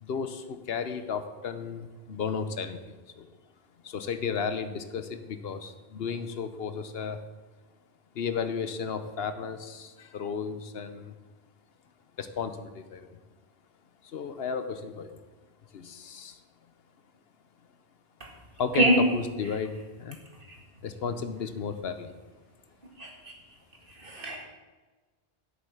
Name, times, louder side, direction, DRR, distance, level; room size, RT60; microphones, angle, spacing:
voice 1, 0.0-3.3 3.8-7.2 8.1-11.2 12.2-13.2 14.0-15.2 15.7-16.4 18.6-20.2 20.8-22.1, left 6 dB, 75° left, 10 dB, 1.0 m, -34 dB
voice 2, 24.0-24.4, right 1 dB, 60° right, 0 dB, 2.2 m, -23 dB
8.4 x 8.0 x 7.1 m, 1.3 s
omnidirectional pair, 1.0 m